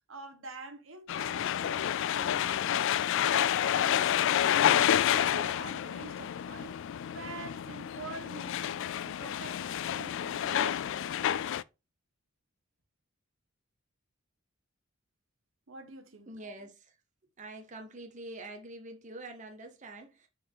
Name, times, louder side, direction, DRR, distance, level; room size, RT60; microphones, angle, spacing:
voice 1, 0.1-2.9 3.2-4.8 5.0-6.8 7.1-11.4 15.7-16.3, right 3 dB, 70° right, 1.2 m, -46 dB
sound 1, 1.1-11.6, left 10 dB, 60° left, 0.3 m, -29 dB
voice 2, 16.3-17.0 17.4-20.3, right 2 dB, 35° right, 1.0 m, -45 dB
5.9 x 5.0 x 3.7 m
head